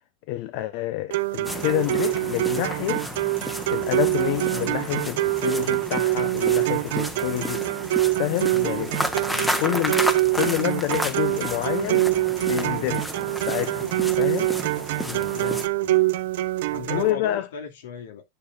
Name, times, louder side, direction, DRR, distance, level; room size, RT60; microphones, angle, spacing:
voice 1, 0.3-3.0 3.7-7.7 8.2-8.9 9.6-10.1 10.3-12.1 12.4-13.1 13.5-13.9 14.2-14.5 16.9-17.5, left 15 dB, 55° left, 0.8 m, -27 dB
sound 1, 1.1-17.1, right 17 dB, 70° right, 0.8 m, -25 dB
sound 2, 1.4-15.7, equal, 5° left, 1.1 m, -32 dB
voice 2, 15.0-16.1 16.7-18.2, left 7 dB, 85° left, 2.4 m, -37 dB
10.0 x 6.6 x 2.4 m
supercardioid pair, 150°, 0 cm